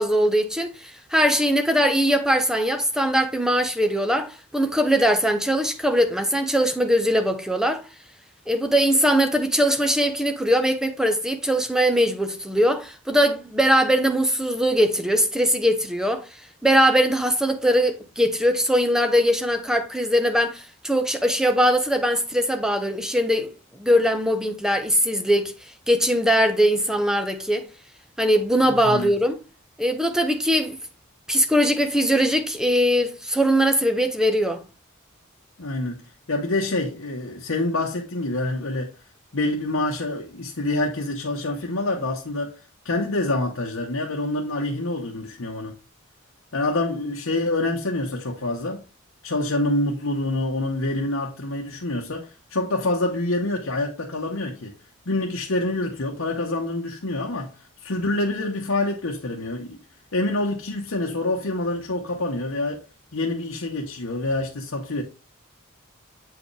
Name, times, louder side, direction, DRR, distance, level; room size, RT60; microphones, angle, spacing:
voice 1, 0.0-7.8 8.5-16.3 16.6-25.5 25.9-27.7 28.2-29.4 29.8-30.8 31.3-34.6, equal, 5° right, 0.8 m, -21 dB
voice 2, 28.6-29.1 35.6-36.0 36.3-38.9 39.3-42.5 42.8-45.8 46.5-48.8 49.2-54.7 55.1-57.5 57.8-59.8 60.1-62.9 63.1-65.0, left 2 dB, 70° left, 1.0 m, -26 dB
7.7 x 4.8 x 3.3 m
head